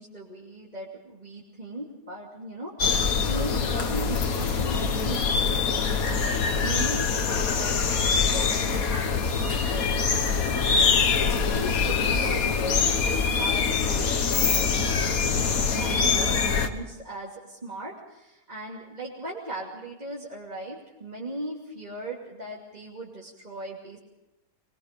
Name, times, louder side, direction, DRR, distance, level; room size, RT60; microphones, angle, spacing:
voice 1, 0.0-24.0, right 1 dB, 25° right, -4 dB, 2.8 m, -38 dB
sound 1, 2.8-16.7, left 5 dB, 55° left, 1.7 m, -24 dB
23.0 x 21.5 x 5.2 m, 0.96 s
omnidirectional pair, 1.8 m